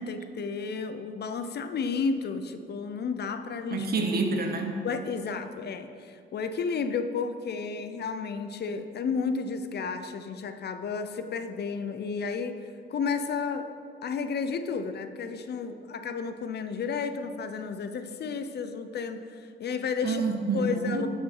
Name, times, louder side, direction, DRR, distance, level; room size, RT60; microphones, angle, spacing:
voice 1, 0.0-3.9 4.8-13.7 14.0-20.2 20.5-21.1, left 5 dB, 55° left, 9 dB, 0.8 m, -32 dB
voice 2, 3.7-4.8 20.0-21.0, right 3 dB, 50° right, 3 dB, 1.5 m, -28 dB
12.5 x 6.1 x 5.5 m, 2.2 s
cardioid pair, 90°, 20 cm